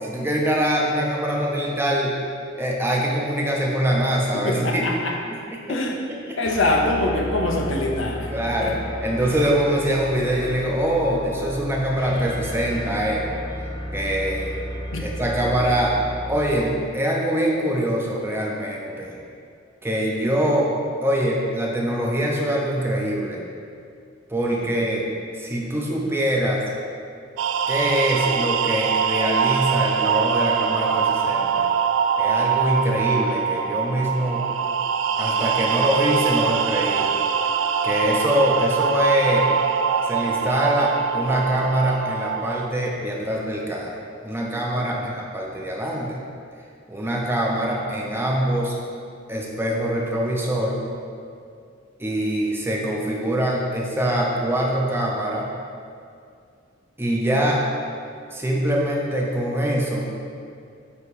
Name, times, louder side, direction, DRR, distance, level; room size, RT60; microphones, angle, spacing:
voice 1, 0.0-2.2 2.5-4.9 5.3-5.8 6.2-6.4 8.3-13.2 13.6-13.7 13.9-14.6 15.0-15.9 16.3-19.2 19.8-20.7 21.0-23.4 24.3-25.1 25.3-26.6 27.7-31.7 32.2-34.5 35.2-37.1 37.8-39.5 40.0-46.2 46.9-48.8 49.3-50.8 52.0-55.5 57.0-57.6 58.3-60.2, equal, 10° right, -2 dB, 0.7 m, -24 dB
voice 2, 4.4-5.2 5.7-6.0 6.4-8.3 8.6-8.8 14.9-15.1 24.5-24.8 44.8-45.1, left 2 dB, 80° left, 1 dB, 0.8 m, -24 dB
sound 1, 6.4-16.8, equal, 20° left, 0.9 m, -33 dB
sound 2, 27.4-42.7, right 7 dB, 90° right, 0.3 m, -23 dB
8.4 x 2.9 x 4.7 m, 2.3 s
head